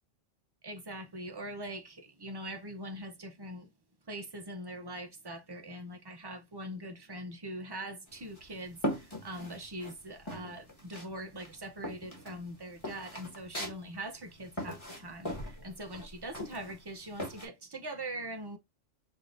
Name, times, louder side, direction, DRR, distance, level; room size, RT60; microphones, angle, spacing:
voice 1, 0.6-3.7 4.1-18.6, right 1 dB, 25° right, 0.5 m, -42 dB
sound 1, 8.1-9.9 10.3-11.1 11.4-17.5, equal, 25° left, 1.6 m, -39 dB
4.5 x 3.6 x 2.5 m
omnidirectional pair, 1.2 m